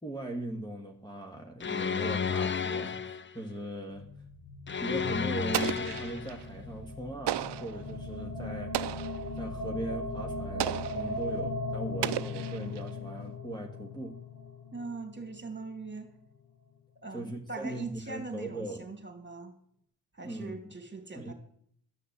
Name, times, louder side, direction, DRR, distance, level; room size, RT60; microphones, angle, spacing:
voice 1, 0.0-4.1 4.8-8.9 9.4-14.2 17.1-18.9 20.2-20.5 21.2-21.3, right 1 dB, 10° left, 2 dB, 1.7 m, -39 dB
sound 1, 1.6-3.4 4.7-6.4, left 6 dB, 30° left, 0.6 m, -32 dB
sound 2, 3.9-16.1, left 2 dB, 75° left, 2.5 m, -39 dB
Explosion, 5.5-6.4 7.3-7.8 8.7-9.3 10.6-11.1 12.0-12.9, right 13 dB, 70° right, 0.6 m, -34 dB
voice 2, 14.7-16.1 17.0-19.5 20.1-21.3, right 3 dB, 25° right, 6 dB, 2.8 m, -41 dB
12.5 x 6.5 x 8.0 m, 0.64 s
cardioid pair, 50°, 43 cm